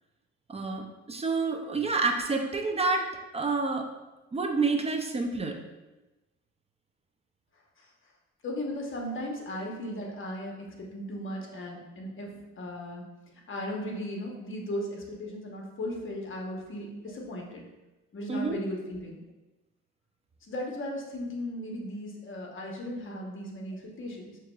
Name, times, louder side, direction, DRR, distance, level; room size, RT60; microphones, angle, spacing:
voice 1, 0.5-3.9 4.3-5.6 18.3-18.6, right 3 dB, 20° right, 4 dB, 0.5 m, -28 dB
voice 2, 8.4-13.0 13.5-17.6 18.1-19.2 20.4-24.4, left 1 dB, 40° left, 0 dB, 1.0 m, -36 dB
5.7 x 3.0 x 2.3 m, 1.1 s
cardioid pair, 90°, 30 cm